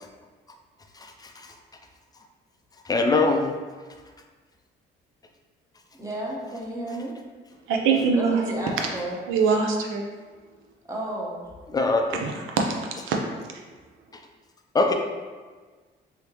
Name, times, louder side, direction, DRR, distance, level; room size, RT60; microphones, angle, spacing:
voice 1, 2.9-3.5 11.7-12.2 14.7-14.9, left 3 dB, 20° left, 4 dB, 0.4 m, -21 dB
voice 2, 5.9-7.2 8.2-9.2 10.9-11.4, right 1 dB, 15° right, -4 dB, 0.9 m, -32 dB
voice 3, 7.7-8.4 8.8-8.9 9.3-10.0 12.1-12.6 13.0-13.2, right 5 dB, 90° right, 2 dB, 0.5 m, -23 dB
3.3 x 2.7 x 3.0 m, 1.4 s
cardioid pair, 90°, 20 cm